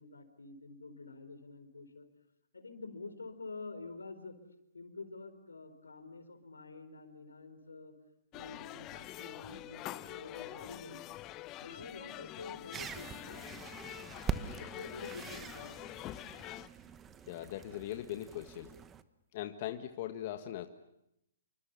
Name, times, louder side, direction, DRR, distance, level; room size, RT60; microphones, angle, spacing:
voice 1, 0.0-2.1 2.5-4.4 4.7-7.9 8.3-11.0 11.6-13.5 14.6-15.8, left 3 dB, 90° left, 9 dB, 4.4 m, -48 dB
sound 1, 8.3-16.7, left 15 dB, 30° left, 0.9 m, -46 dB
sound 2, 12.7-19.0, right 7 dB, 20° right, 1.2 m, -43 dB
voice 2, 17.3-18.8 19.3-20.7, left 12 dB, 45° left, 6 dB, 1.6 m, -40 dB
28.5 x 25.0 x 7.0 m, 0.80 s
hypercardioid pair, 130°, 0 cm